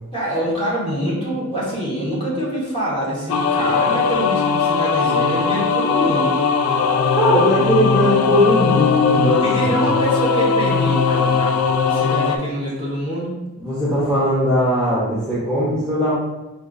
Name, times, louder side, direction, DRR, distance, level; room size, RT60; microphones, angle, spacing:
voice 1, 0.1-6.4 8.6-8.7 9.4-11.6 11.8-13.4, right 1 dB, 25° left, -6 dB, 1.4 m, -25 dB
sound 1, 3.3-12.4, left 5 dB, 90° left, 0.4 m, -19 dB
voice 2, 7.1-9.8 13.6-16.1, left 1 dB, 5° left, -10 dB, 0.9 m, -19 dB
4.3 x 2.5 x 3.9 m, 1.0 s
head